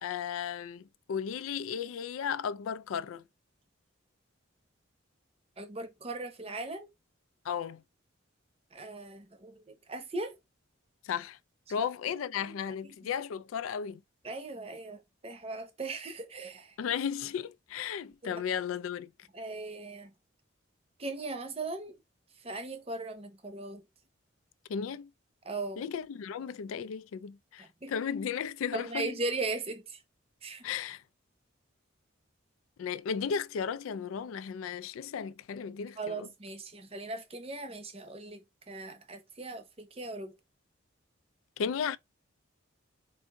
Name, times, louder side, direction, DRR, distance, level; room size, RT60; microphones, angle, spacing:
voice 1, 0.0-3.2 7.4-7.8 11.0-11.4 11.7-14.0 16.8-19.1 24.7-25.1 25.8-29.2 30.6-31.0 32.8-36.3 41.6-42.0, left 7 dB, 85° left, 0.3 m, -35 dB
voice 2, 5.6-6.9 8.7-10.4 11.8-11.9 12.4-12.6 12.8-13.0 14.2-16.8 18.2-18.4 19.3-20.1 21.0-21.9 22.4-23.8 25.4-25.8 27.6-27.9 28.7-30.0 30.4-30.7 36.0-40.3, right 2 dB, 30° right, 0.7 m, -38 dB
4.7 x 2.6 x 3.6 m
head